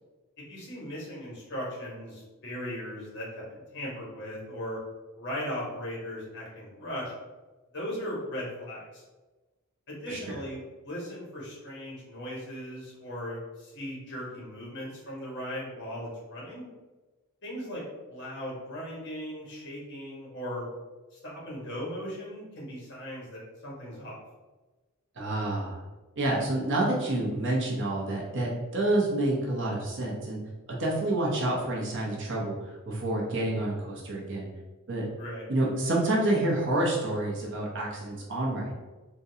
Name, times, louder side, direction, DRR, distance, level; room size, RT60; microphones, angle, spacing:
voice 1, 0.5-4.8 5.1-7.1 7.7-9.0 9.9-16.7 17.4-17.8 18.1-20.7 21.1-24.2 35.2-35.4, equal, 55° left, -5 dB, 1.2 m, -38 dB
voice 2, 25.2-25.8 26.2-30.4 30.7-34.5 34.9-35.1 35.5-38.8, right 1 dB, 60° right, -2 dB, 0.8 m, -28 dB
3.7 x 2.2 x 2.7 m, 1.2 s
head